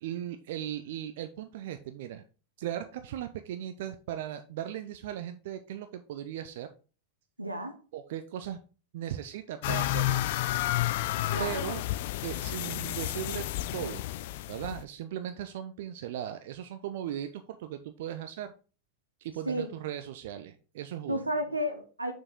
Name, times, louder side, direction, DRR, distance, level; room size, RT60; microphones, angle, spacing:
voice 1, 0.0-2.2 2.6-6.7 7.9-8.6 8.9-10.2 11.4-11.8 12.2-13.5 13.7-14.0 14.5-18.5 19.2-21.2, right 11 dB, 55° right, 0.5 m, -37 dB
voice 2, 7.4-7.8 11.3-11.6 19.5-19.7 21.1-22.1, equal, 85° right, 0.9 m, -32 dB
sound 1, 9.6-14.8, left 15 dB, 50° left, 0.3 m, -31 dB
6.5 x 4.7 x 3.6 m
figure-of-eight pair, 90°, 0 cm